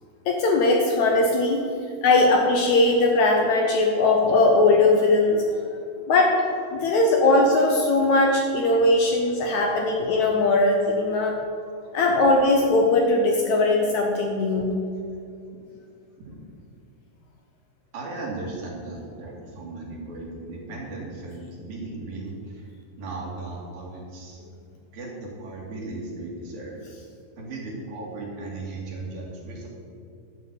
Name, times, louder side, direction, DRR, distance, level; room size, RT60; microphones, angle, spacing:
voice 1, 0.2-1.7 2.0-5.4 6.1-6.3 6.7-11.3 11.9-14.7, left 2 dB, 75° left, 1 dB, 1.7 m, -20 dB
voice 2, 17.9-22.7 23.0-24.4 24.9-26.8 27.4-29.7, right 2 dB, 70° right, -3 dB, 3.8 m, -36 dB
12.0 x 5.7 x 8.2 m, 2.5 s
omnidirectional pair, 4.5 m